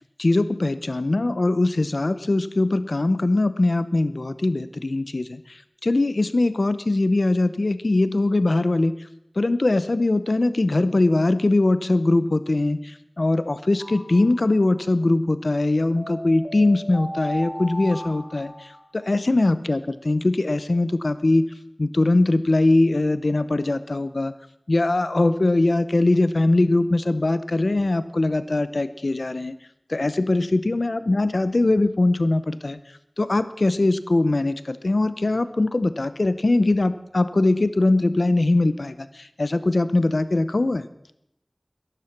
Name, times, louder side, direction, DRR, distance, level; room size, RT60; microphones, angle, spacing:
voice 1, 0.2-5.4 5.8-8.9 9.4-18.5 18.9-21.4 21.8-24.3 24.7-29.6 29.9-32.8 33.2-40.9, left 2 dB, 80° left, 13 dB, 0.7 m, -21 dB
sound 1, 13.8-14.8 16.0-19.2, equal, 15° right, 2.3 m, -36 dB
13.0 x 12.0 x 5.9 m, 0.77 s
wide cardioid pair, 45°, 0 cm